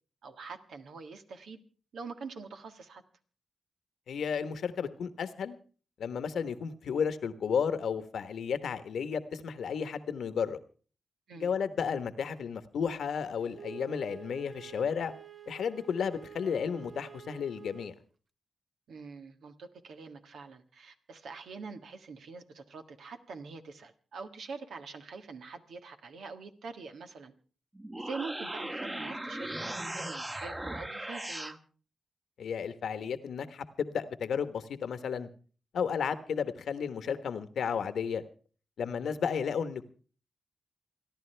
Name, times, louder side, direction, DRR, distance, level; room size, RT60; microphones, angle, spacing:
voice 1, 0.2-1.6 1.9-3.0 11.3-11.5 18.9-27.3 28.0-31.6, right 4 dB, 80° right, 6 dB, 1.6 m, -44 dB
voice 2, 4.1-5.6 6.0-10.6 11.4-15.1 15.5-17.9 32.4-35.3 35.7-38.2 38.8-39.9, left 6 dB, 80° left, 11 dB, 1.2 m, -33 dB
Wind instrument woodwind instrument, 13.5-18.0, right 8 dB, 45° right, 0.9 m, -49 dB
sound 1, 27.7-31.6, right 1 dB, 20° right, 1.3 m, -38 dB
28.5 x 11.0 x 3.4 m, 0.39 s
cardioid pair, 55°, 0 cm